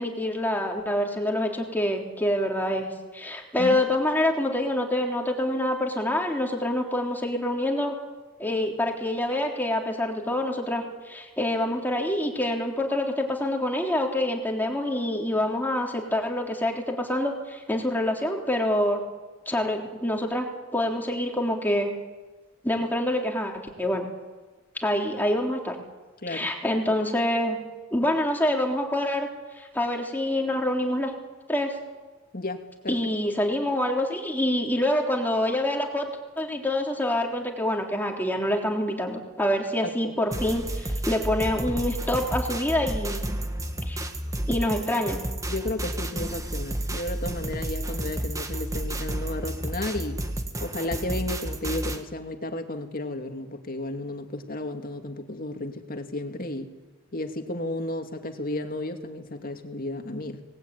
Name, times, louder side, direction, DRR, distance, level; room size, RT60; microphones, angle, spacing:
voice 1, 0.0-2.9 3.1-8.0 8.4-19.0 19.5-21.9 22.6-23.5 23.8-24.1 24.8-25.8 26.3-27.6 27.9-29.3 29.5-31.1 31.5-31.7 32.9-36.1 36.4-43.2 43.9-44.0 44.5-45.2, left 1 dB, 10° left, 1 dB, 3.5 m, -26 dB
voice 2, 32.3-33.0 39.8-40.1 45.5-50.2 50.6-56.7 57.1-60.4, left 2 dB, 45° left, 5 dB, 2.5 m, -33 dB
sound 1, 40.3-52.0, right 1 dB, 15° right, 1.8 m, -31 dB
25.5 x 19.5 x 9.4 m, 1.3 s
head